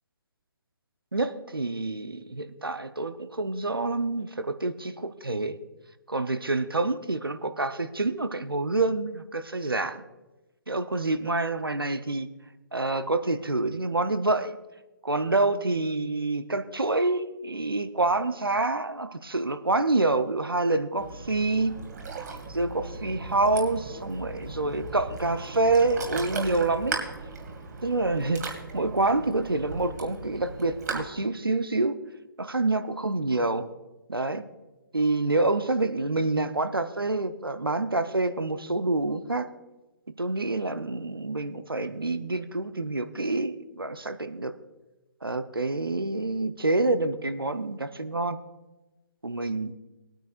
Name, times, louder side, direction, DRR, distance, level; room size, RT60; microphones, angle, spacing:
voice 1, 1.1-5.6 6.1-10.0 10.7-12.3 12.7-14.6 15.0-21.8 22.5-27.0 27.8-28.4 28.7-32.0 32.4-33.7 34.1-34.4 34.9-39.5 40.2-44.5 45.2-48.4 49.2-49.7, right 2 dB, 80° right, 10 dB, 0.8 m, -27 dB
Ocean, 21.0-31.0, right 4 dB, 50° right, 2.3 m, -37 dB
20.5 x 9.0 x 2.5 m, 1.1 s
figure-of-eight pair, 135°, 12 cm